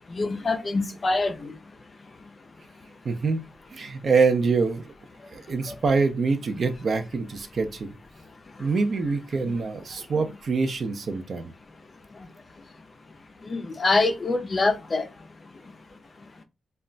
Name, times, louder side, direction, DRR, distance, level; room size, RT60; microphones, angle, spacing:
voice 1, 0.2-1.3 13.5-15.0, left 3 dB, 35° left, 0.4 m, -24 dB
voice 2, 3.0-3.4 3.7-4.9 5.3-7.9 8.6-11.5, right 4 dB, 50° right, 0.4 m, -25 dB
2.2 x 2.1 x 3.7 m
wide cardioid pair, 155°, 0 cm